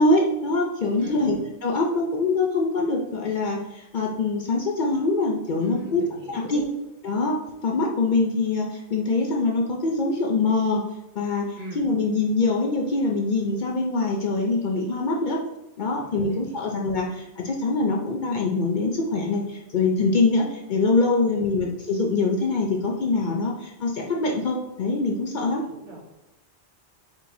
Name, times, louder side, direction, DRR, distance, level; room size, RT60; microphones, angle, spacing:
voice 1, 0.0-6.0 6.3-6.6 7.0-7.3 7.6-10.9 11.2-15.4 15.8-25.6, left 3 dB, 55° left, 0 dB, 0.6 m, -24 dB
voice 2, 1.0-1.4 5.6-6.7 11.6-11.9 16.0-16.8 21.2-21.6 25.6-26.0, right 2 dB, 85° right, -7 dB, 1.9 m, -40 dB
4.5 x 4.1 x 2.7 m, 0.93 s
omnidirectional pair, 1.2 m